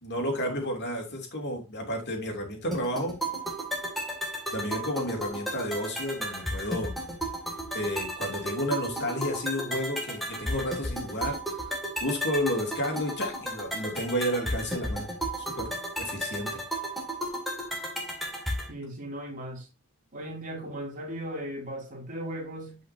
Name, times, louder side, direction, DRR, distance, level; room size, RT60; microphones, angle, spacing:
voice 1, 0.0-3.1 4.5-6.9 7.7-11.4 12.0-15.1 15.4-16.6, equal, 50° left, 2.9 m, -31 dB
sound 1, 2.7-18.7, right 1 dB, ahead, 2.3 m, -34 dB
voice 2, 18.7-19.7 20.1-22.8, right 1 dB, 35° right, 2.9 m, -37 dB
10.0 x 5.7 x 2.8 m
head